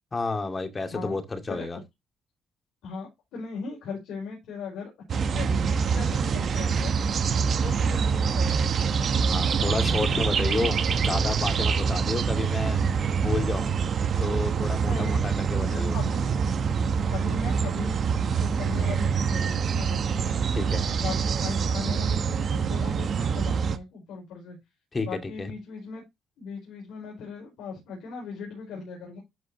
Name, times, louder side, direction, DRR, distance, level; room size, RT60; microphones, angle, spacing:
voice 1, 0.1-1.8 9.3-12.8 13.2-13.7 14.2-15.9 20.6-20.8 24.9-25.5, left 3 dB, 30° left, 2.3 m, -31 dB
voice 2, 2.8-6.9 7.6-9.2 14.8-15.3 15.6-16.3 17.1-17.9 18.3-20.4 20.9-24.6 25.0-26.0 26.4-29.2, left 4 dB, 85° left, 5.0 m, -38 dB
sound 1, 5.1-23.8, right 6 dB, 55° right, 1.0 m, -25 dB
13.0 x 5.0 x 2.9 m
cardioid pair, 90°, 0 cm